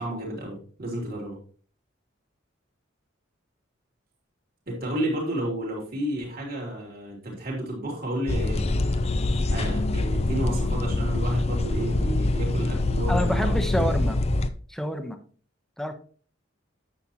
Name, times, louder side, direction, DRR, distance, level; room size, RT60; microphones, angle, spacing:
voice 1, 0.0-1.4 4.7-9.1 9.5-13.9, right 1 dB, 50° right, -3 dB, 3.5 m, -31 dB
sound 1, 8.3-14.5, left 2 dB, 35° left, 0.5 m, -25 dB
voice 2, 13.1-14.2 14.7-15.2 15.8-15.9, equal, ahead, 7 dB, 0.9 m, -27 dB
9.7 x 7.8 x 2.9 m, 0.42 s
head